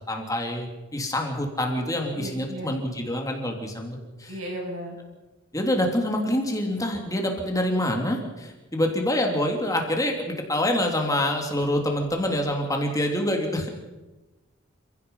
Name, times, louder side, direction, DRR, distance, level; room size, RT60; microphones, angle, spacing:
voice 1, 0.1-4.3 5.5-13.7, left 1 dB, 15° left, 2 dB, 3.3 m, -26 dB
voice 2, 2.1-2.7 4.3-5.0 12.9-13.0, right 1 dB, 80° right, 0 dB, 7.7 m, -35 dB
29.5 x 16.5 x 5.7 m, 1.1 s
head